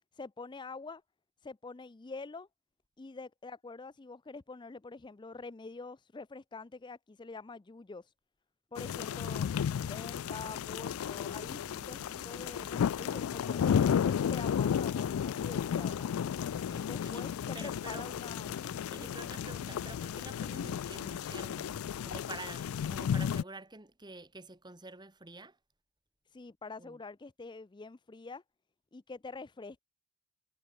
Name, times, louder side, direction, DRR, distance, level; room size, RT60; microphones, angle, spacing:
voice 1, 0.1-1.0 1.4-2.5 3.0-8.1 8.7-9.5 9.8-16.1 16.8-18.5 19.0-19.2 26.3-28.4 28.9-29.8, left 3 dB, 20° left, 0.4 m, -46 dB
sound 1, 8.8-23.4, left 8 dB, 90° left, 0.3 m, -33 dB
sound 2, 10.2-22.2, right 1 dB, 40° right, 2.5 m, -57 dB
voice 2, 16.4-17.3 17.5-18.1 18.9-21.8 22.0-25.6 26.8-27.0, right 3 dB, 20° right, 1.6 m, -48 dB
head